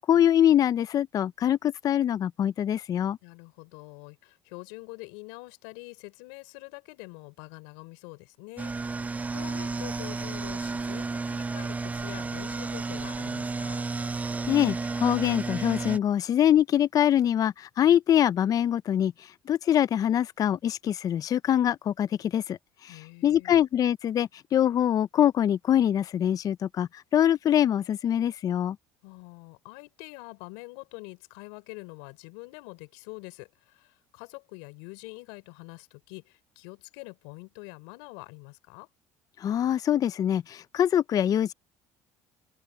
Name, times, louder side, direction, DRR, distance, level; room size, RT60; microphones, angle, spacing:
voice 1, 0.1-3.2 14.5-28.8 39.4-41.5, left 10 dB, 45° left, 0.6 m, -24 dB
voice 2, 3.2-9.0 9.3-13.8 22.9-23.6 29.0-38.9, left 28 dB, 80° left, 4.7 m, -45 dB
sound 1, 8.6-16.0, right 3 dB, 20° right, 0.7 m, -32 dB
open air
supercardioid pair, 85°, 9 cm